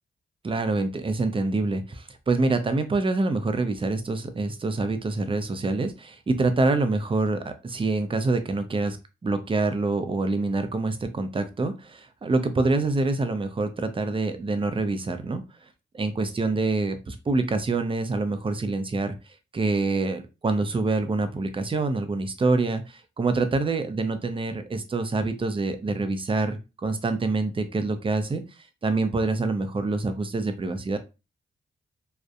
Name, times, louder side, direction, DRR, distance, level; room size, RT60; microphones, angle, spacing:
voice 1, 0.4-9.0 9.2-15.4 15.9-19.2 19.5-28.4 28.8-31.0, right 3 dB, 25° right, 9 dB, 0.5 m, -26 dB
2.6 x 2.0 x 2.4 m, 0.28 s
cardioid pair, 65°, 20 cm